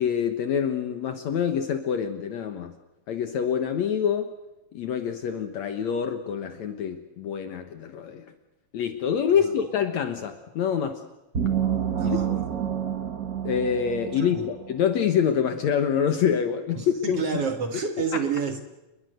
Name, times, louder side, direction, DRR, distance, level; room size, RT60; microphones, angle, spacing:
voice 1, 0.0-2.7 3.1-4.3 4.7-8.3 8.7-11.0 12.0-12.2 13.4-17.2, left 8 dB, 65° left, 8 dB, 2.4 m, -26 dB
sound 1, 11.3-14.9, right 9 dB, 35° right, 1.7 m, -28 dB
voice 2, 12.0-12.5 14.1-14.5 16.7-18.6, right 6 dB, 55° right, 7 dB, 2.3 m, -29 dB
28.5 x 22.0 x 6.6 m, 0.99 s
omnidirectional pair, 3.7 m